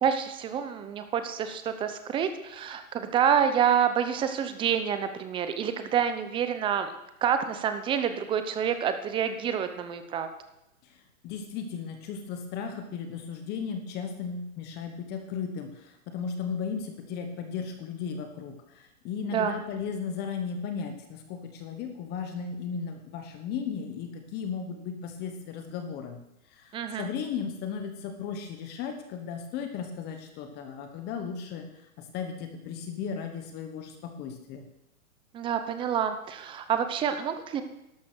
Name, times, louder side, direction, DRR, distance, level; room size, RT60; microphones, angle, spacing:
voice 1, 0.0-6.9 7.2-10.3 19.2-19.6 26.7-27.1 35.3-37.6, right 8 dB, 10° right, 9 dB, 0.8 m, -28 dB
voice 2, 10.8-26.2 26.5-34.6, left 6 dB, 25° left, 6 dB, 1.3 m, -36 dB
12.5 x 11.5 x 6.3 m, 0.87 s
hypercardioid pair, 150°, 44 cm